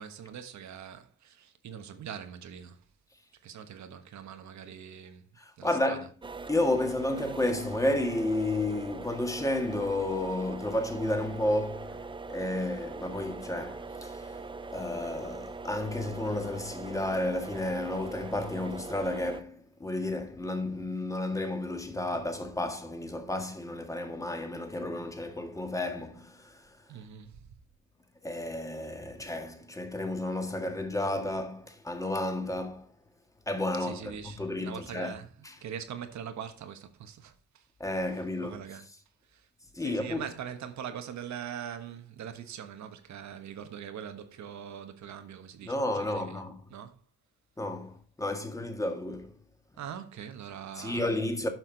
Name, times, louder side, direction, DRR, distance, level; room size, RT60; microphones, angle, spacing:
voice 1, 0.0-2.8 3.4-5.3 5.6-6.1 26.9-27.4 33.8-35.3 35.6-37.7 38.4-38.9 39.3-39.5 39.8-46.4 46.7-47.0 49.8-51.2, right 8 dB, 65° right, 1.3 m, -42 dB
voice 2, 5.4-6.1 6.5-14.4 14.7-26.9 28.2-32.9 33.5-35.2 35.4-35.6 37.8-38.6 39.7-40.3 45.6-46.6 47.6-49.3 50.8-51.5, left 1 dB, 10° left, 1.7 m, -32 dB
sound 1, 6.2-19.4, right 3 dB, 15° right, 0.5 m, -42 dB
9.3 x 5.8 x 4.0 m
cardioid pair, 90°, 30 cm